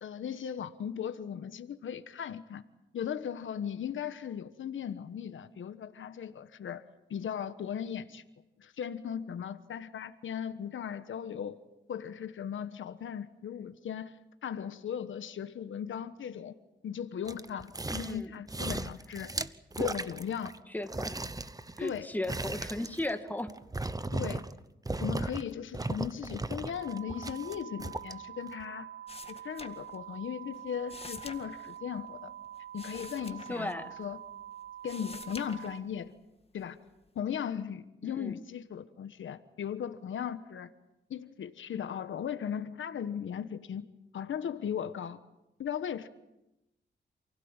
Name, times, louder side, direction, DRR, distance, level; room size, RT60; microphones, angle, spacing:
voice 1, 0.0-2.6 2.9-6.8 7.1-8.2 8.6-11.6 11.9-16.5 16.8-19.3 19.8-20.5 21.8-22.1 24.1-24.4 25.0-28.9 29.3-32.3 32.7-33.7 34.0-34.2 34.8-36.1 36.5-36.8 37.1-40.7 41.1-43.8 44.1-45.2 45.6-46.1, left 8 dB, 85° left, 1.3 m, -37 dB
sound 1, 17.3-18.2 18.5-20.6 20.9-24.6 24.9-25.4 25.7-28.1 28.6-28.7, right 2 dB, 20° right, 1.0 m, -36 dB
voice 2, 17.9-18.3 20.7-21.2 21.8-23.5 33.5-33.9 38.0-38.4, left 1 dB, 10° left, 2.1 m, -36 dB
sound 2, 26.7-35.8, right 11 dB, 65° right, 5.1 m, -46 dB
sound 3, 29.1-30.3 30.5-34.3 34.7-36.1 36.6-37.2, left 3 dB, 30° left, 2.0 m, -49 dB
28.5 x 16.5 x 9.0 m
cardioid pair, 85°, 20 cm